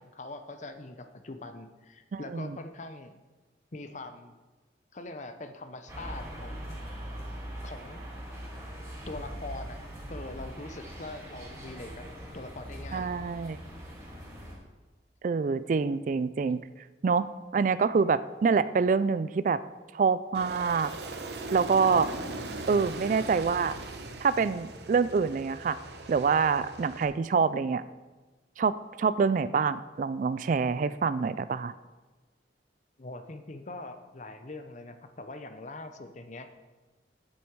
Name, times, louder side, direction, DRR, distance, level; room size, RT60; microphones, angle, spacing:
voice 1, 0.0-3.1 3.7-4.3 4.9-6.7 7.6-8.0 9.1-9.8 10.1-12.1 12.3-13.1 33.0-36.5, left 2 dB, 40° left, 8 dB, 0.7 m, -42 dB
voice 2, 2.1-2.5 12.9-13.6 15.2-16.6 17.0-17.3 17.5-19.6 19.9-20.9 21.5-22.1 22.7-23.8 24.2-25.8 26.1-27.8 28.6-31.7, right 5 dB, 45° right, 15 dB, 0.3 m, -26 dB
sound 1, 5.9-14.6, equal, 20° right, 3.0 m, -41 dB
Aircraft, 20.3-27.0, right 2 dB, 70° right, 1.0 m, -40 dB
9.5 x 8.5 x 4.7 m, 1.3 s
head